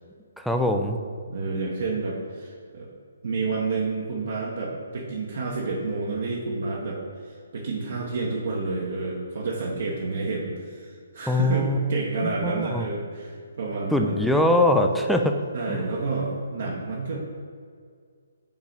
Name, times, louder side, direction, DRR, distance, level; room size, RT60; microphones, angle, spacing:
voice 1, 0.4-1.0 11.3-11.9 12.2-12.9 13.9-15.3 15.7-15.9, left 1 dB, ahead, 3 dB, 0.4 m, -22 dB
voice 2, 1.3-2.9 3.2-14.2 15.5-17.2, right 3 dB, 55° right, -3 dB, 1.0 m, -30 dB
7.0 x 4.1 x 3.9 m, 2.1 s
figure-of-eight pair, 135°, 0 cm